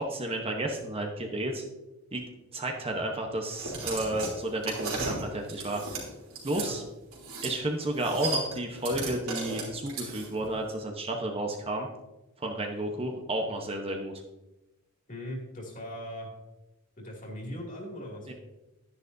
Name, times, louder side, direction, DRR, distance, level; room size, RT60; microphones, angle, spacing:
voice 1, 0.0-1.6 2.1-2.2 2.5-6.0 6.4-6.8 7.4-11.9 12.4-14.1 18.3-18.4, right 1 dB, 25° right, 2 dB, 0.9 m, -32 dB
sound 1, 3.5-6.7 7.1-7.6 7.8-10.5, right 3 dB, 80° right, 3.2 m, -35 dB
voice 2, 15.1-16.3 17.0-18.3, equal, 40° left, -1 dB, 2.6 m, -39 dB
11.0 x 10.5 x 2.7 m, 1.0 s
head